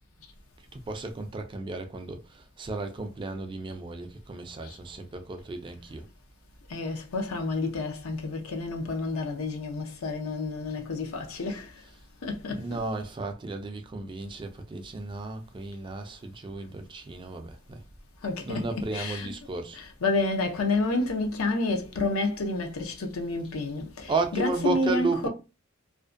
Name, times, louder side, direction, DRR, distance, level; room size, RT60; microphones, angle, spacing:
voice 1, 0.7-6.1 12.5-17.8 18.4-19.8 24.1-25.3, right 3 dB, 25° right, 0.3 m, -33 dB
voice 2, 6.7-11.7 12.2-12.8 18.2-18.7 18.9-19.3 19.7-25.3, left 2 dB, 80° left, 0.6 m, -29 dB
2.5 x 2.1 x 2.5 m
head